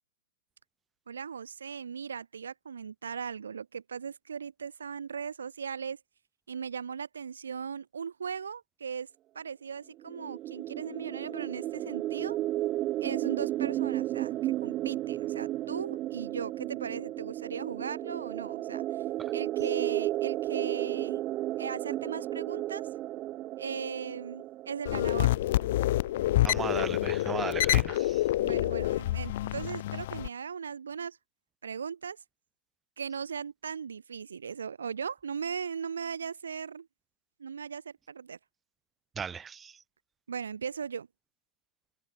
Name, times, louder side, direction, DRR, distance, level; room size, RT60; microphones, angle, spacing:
voice 1, 1.1-6.0 6.5-9.1 9.3-12.4 13.0-19.0 19.3-21.2 21.6-22.9 23.6-25.4 28.4-31.2 31.6-32.2 33.0-36.9 37.4-38.4 40.3-41.1, right 6 dB, 70° right, 0.9 m, -38 dB
sound 1, 10.0-25.7, right 15 dB, 35° right, 0.5 m, -33 dB
sound 2, 24.8-30.3, left 15 dB, 55° left, 0.8 m, -27 dB
voice 2, 26.4-28.2 39.2-39.8, right 6 dB, 20° right, 1.9 m, -36 dB
figure-of-eight pair, 90°, 0 cm